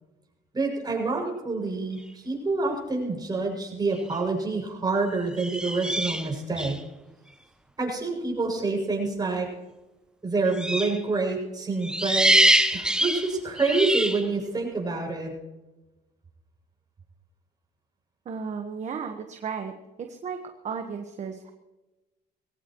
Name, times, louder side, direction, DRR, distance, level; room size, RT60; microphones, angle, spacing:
voice 1, 0.5-6.8 7.8-9.5 10.2-12.4 12.7-15.4, right 3 dB, 25° right, -1 dB, 6.9 m, -27 dB
sound 1, 3.9-4.2 5.3-6.8 10.5-11.0 11.8-14.3, right 1 dB, 5° right, 1.1 m, -24 dB
voice 2, 18.2-19.7 20.1-21.5, right 6 dB, 45° right, 5 dB, 1.4 m, -35 dB
21.5 x 17.0 x 3.1 m, 1.1 s
cardioid pair, 110°, 17 cm